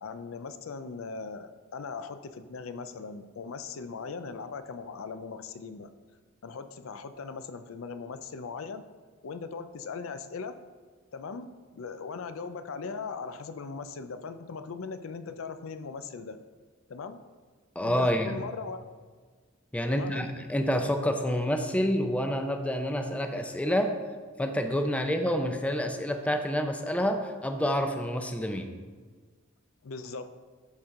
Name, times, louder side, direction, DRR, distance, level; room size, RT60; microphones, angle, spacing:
voice 1, 0.0-5.9 6.4-8.8 9.2-10.6 11.1-16.4 16.9-17.2 17.8-18.8 19.9-20.2 29.8-30.3, left 5 dB, 80° left, 10 dB, 0.5 m, -39 dB
voice 2, 17.8-18.3 19.7-24.0 24.4-28.7, equal, 5° left, 5 dB, 0.5 m, -28 dB
13.0 x 4.5 x 3.7 m, 1.5 s
head